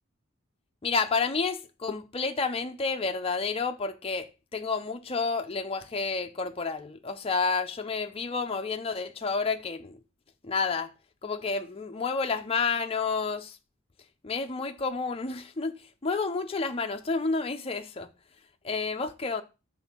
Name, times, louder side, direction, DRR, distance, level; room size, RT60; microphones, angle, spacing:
voice 1, 0.8-10.0 10.4-10.9 11.2-13.6 14.2-18.1 18.6-19.4, left 4 dB, 30° left, 0.6 m, -30 dB
6.2 x 3.8 x 6.0 m
head